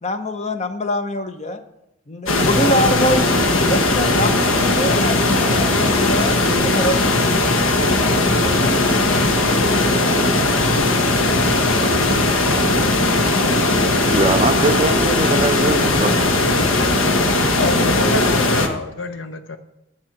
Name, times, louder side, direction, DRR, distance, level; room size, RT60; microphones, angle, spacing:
voice 1, 0.0-1.6 2.1-3.3 3.7-6.4 6.6-7.2, equal, 35° left, 9 dB, 0.8 m, -24 dB
sound 1, 2.3-18.7, left 2 dB, 85° left, 1.2 m, -18 dB
voice 2, 13.9-16.1, right 2 dB, 25° right, 10 dB, 0.7 m, -21 dB
voice 3, 17.5-19.6, left 3 dB, 65° left, 7 dB, 0.8 m, -26 dB
10.5 x 7.5 x 6.0 m, 0.88 s
head